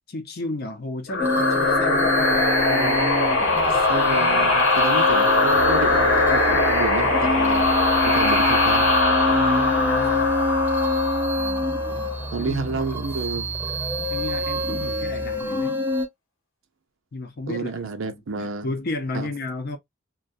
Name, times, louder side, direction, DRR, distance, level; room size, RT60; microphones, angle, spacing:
voice 1, 0.1-2.5 9.3-10.3 12.4-12.8 13.2-13.5 14.1-15.8 17.1-17.7 18.1-19.8, left 2 dB, 50° left, 0.6 m, -33 dB
sound 1, 1.1-12.4, left 2 dB, 85° left, 1.0 m, -21 dB
sound 2, 1.2-16.1, left 2 dB, 10° right, 0.5 m, -26 dB
voice 2, 2.7-3.2 3.7-7.7 8.0-8.9 12.3-13.5 17.5-18.7 19.1-19.3, right 4 dB, 70° right, 0.5 m, -30 dB
Musical instrument, 5.5-15.4, equal, 20° left, 1.0 m, -36 dB
2.3 x 2.2 x 2.6 m
head